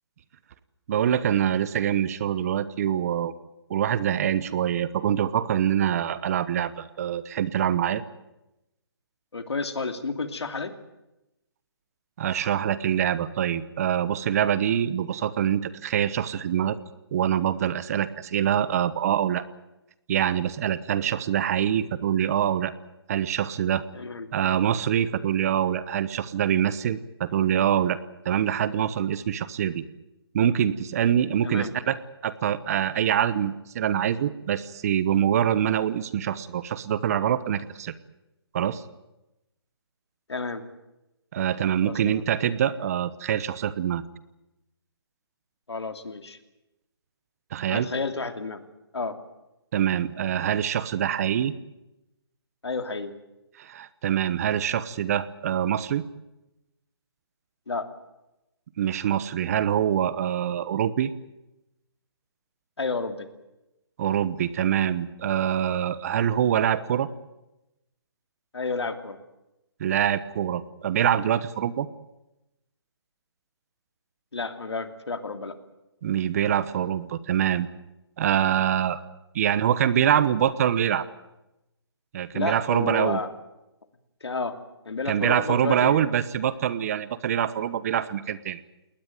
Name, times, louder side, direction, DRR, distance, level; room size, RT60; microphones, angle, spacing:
voice 1, 0.9-3.4 3.7-8.0 12.2-16.8 17.1-19.4 20.1-22.7 23.1-23.8 24.3-28.0 28.2-29.8 30.3-37.9 38.5-38.8 41.3-44.0 47.5-47.9 49.7-51.5 53.6-56.0 58.8-61.1 64.0-67.1 69.8-71.9 76.0-77.7 78.2-79.0 79.3-81.0 82.1-83.2 85.1-88.6, right 9 dB, 35° right, 16 dB, 1.1 m, -25 dB
voice 2, 9.3-10.7 23.9-24.3 31.4-31.8 40.3-40.6 41.8-42.2 45.7-46.4 47.7-48.6 48.9-49.2 52.6-53.1 57.7-57.9 62.8-63.3 68.5-69.2 74.3-75.6 82.3-83.3 84.2-84.6 84.9-86.1, left 3 dB, 85° left, 8 dB, 2.8 m, -31 dB
20.5 x 19.0 x 9.2 m, 0.94 s
hypercardioid pair, 155°, 14 cm